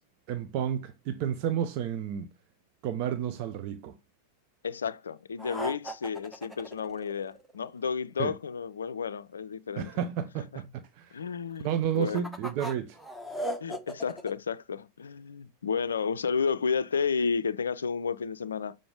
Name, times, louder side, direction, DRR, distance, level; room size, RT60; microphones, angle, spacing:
voice 1, 0.3-2.3 2.8-4.0 8.2-8.3 9.8-11.2 11.6-13.0, right 9 dB, 45° right, 0.6 m, -31 dB
voice 2, 4.6-9.9 10.5-10.6 11.1-12.3 13.6-18.8, left 6 dB, 70° left, 0.4 m, -32 dB
sound 1, 5.4-7.6 11.7-14.3, equal, ahead, 1.1 m, -37 dB
6.9 x 5.2 x 3.5 m
figure-of-eight pair, 90°, 0 cm